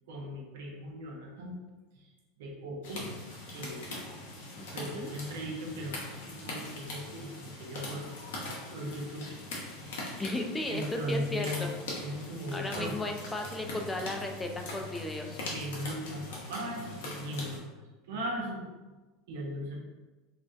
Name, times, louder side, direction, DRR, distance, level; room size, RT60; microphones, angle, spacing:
voice 1, 0.1-1.6 1.9-2.1 2.4-3.1 3.5-3.9 4.7-8.1 8.4-9.3 9.8-10.3 10.7-11.7 12.0-12.9 15.5-17.6 18.1-18.7 19.3-19.8, equal, 75° right, -1 dB, 0.5 m, -38 dB
sound 1, 2.8-17.6, left 2 dB, 75° left, 0.7 m, -41 dB
voice 2, 10.2-11.7 12.5-15.4, left 2 dB, 15° left, 3 dB, 0.4 m, -35 dB
2.5 x 2.1 x 2.4 m, 1.2 s
hypercardioid pair, 90°, 0 cm